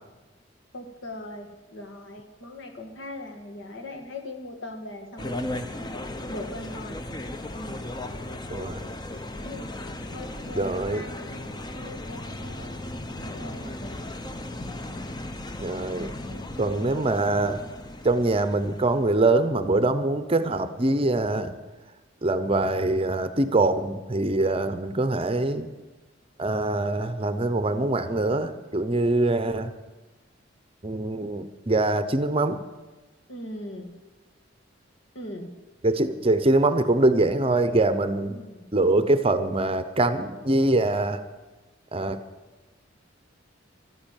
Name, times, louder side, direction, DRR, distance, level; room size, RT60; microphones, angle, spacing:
voice 1, 0.7-5.4 6.3-7.0 7.5-7.8 9.4-9.7 10.1-14.0 16.3-17.0 27.7-28.0 33.3-33.9 35.2-35.5 38.3-38.6, left 1 dB, 65° left, 4 dB, 1.9 m, -40 dB
sound 1, 5.2-19.4, left 1 dB, 20° left, 0.8 m, -36 dB
voice 2, 8.5-8.9 10.5-11.0 15.6-16.1 16.6-17.6 18.0-21.5 22.2-25.7 26.4-29.7 30.8-32.6 35.8-38.4 38.7-41.2 41.9-42.2, right 2 dB, 30° right, 11 dB, 0.7 m, -23 dB
12.5 x 9.9 x 9.0 m, 1.2 s
head